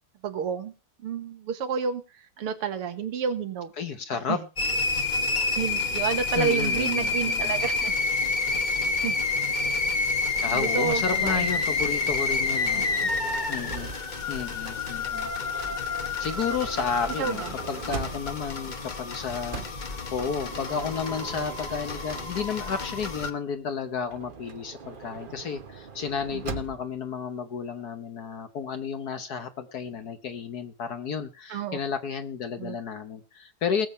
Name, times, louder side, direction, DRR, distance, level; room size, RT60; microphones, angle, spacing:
voice 1, 0.2-0.7 1.0-3.7 4.3-4.4 5.6-8.0 9.0-9.2 9.7-9.8 10.5-11.5 12.8-13.1 17.2-17.5 26.3-26.4 31.5-31.8 32.6-32.8, right 6 dB, 85° right, 8 dB, 2.3 m, -30 dB
voice 2, 3.8-4.4 6.4-7.6 10.4-12.9 13.5-13.9 14.3-15.3 16.2-33.9, left 6 dB, 55° left, 10 dB, 1.2 m, -32 dB
sound 1, 4.6-23.3, left 3 dB, 35° left, 0.7 m, -28 dB
Motor vehicle (road) / Sliding door, 11.2-14.3 15.3-18.6 19.5-22.8 24.0-27.0, right 5 dB, 50° right, 0.6 m, -41 dB
19.5 x 7.2 x 5.5 m, 0.33 s
omnidirectional pair, 2.4 m